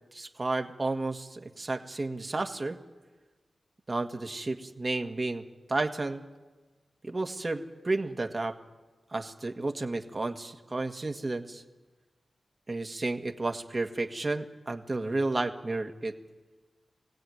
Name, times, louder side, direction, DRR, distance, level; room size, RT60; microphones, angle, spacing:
voice 1, 0.1-2.8 3.9-5.4 5.7-6.2 7.0-8.6 9.1-11.6 12.7-16.1, right 2 dB, 40° right, 4 dB, 1.8 m, -32 dB
24.0 x 16.5 x 9.5 m, 1.3 s
cardioid pair, 45°, 0 cm